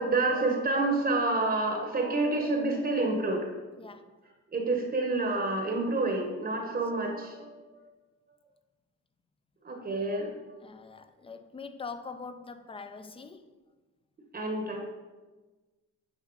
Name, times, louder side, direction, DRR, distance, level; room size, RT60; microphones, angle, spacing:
voice 1, 0.0-3.5 4.5-7.8 9.6-10.3 14.3-14.8, right 2 dB, 30° right, 2 dB, 0.9 m, -28 dB
voice 2, 3.8-4.1 10.6-13.5, left 4 dB, 20° left, 10 dB, 0.4 m, -43 dB
8.7 x 3.1 x 3.8 m, 1.2 s
cardioid pair, 90°, 30 cm